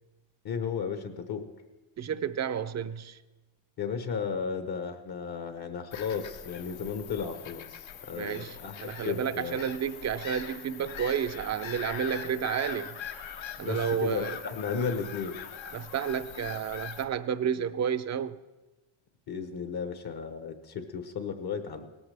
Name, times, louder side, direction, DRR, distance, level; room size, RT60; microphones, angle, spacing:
voice 1, 0.4-1.5 3.8-9.6 13.6-15.4 19.3-21.9, left 6 dB, 50° left, 1.1 m, -34 dB
voice 2, 2.0-3.2 8.1-13.0 13.6-14.4 15.7-18.3, right 8 dB, 35° right, 0.6 m, -31 dB
Bird vocalization bird call bird song / Gull seagull, 5.9-17.0, left 8 dB, 70° left, 1.2 m, -42 dB
17.5 x 14.0 x 3.4 m
cardioid pair, 125°, 47 cm